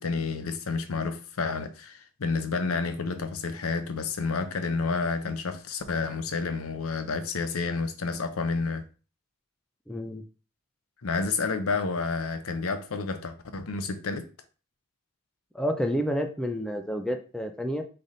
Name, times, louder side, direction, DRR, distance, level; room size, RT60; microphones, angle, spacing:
voice 1, 0.0-8.8 11.0-14.3, left 4 dB, 80° left, 0.6 m, -30 dB
voice 2, 9.9-10.2 15.5-17.8, equal, 5° left, 0.4 m, -29 dB
4.0 x 3.3 x 3.9 m
head